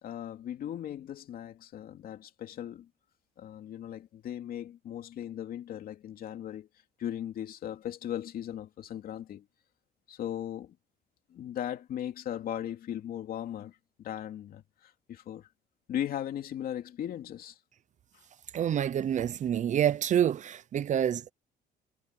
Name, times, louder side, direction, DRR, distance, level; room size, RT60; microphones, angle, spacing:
voice 1, 0.0-2.9 3.4-6.7 7.0-9.4 10.1-10.7 11.3-15.5 15.9-17.6, left 10 dB, 60° left, 2.6 m, -38 dB
voice 2, 18.5-21.3, right 10 dB, 45° right, 0.7 m, -27 dB
cardioid pair, 110°, 17 cm